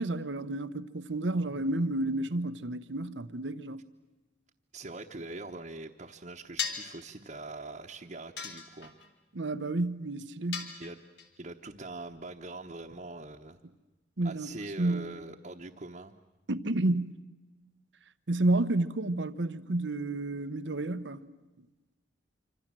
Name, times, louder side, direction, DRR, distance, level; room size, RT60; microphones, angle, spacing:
voice 1, 0.0-3.8 9.3-10.7 14.2-14.5 14.8-15.1 16.5-17.2 18.3-21.2, right 2 dB, 85° right, 1.0 m, -30 dB
voice 2, 4.7-8.9 10.8-11.0 11.4-13.6 14.2-16.1, right 2 dB, 45° right, 1.1 m, -43 dB
sound 1, 6.6-7.0 8.4-9.1 10.5-11.3, left 6 dB, 75° left, 2.8 m, -36 dB
26.5 x 26.0 x 7.6 m
head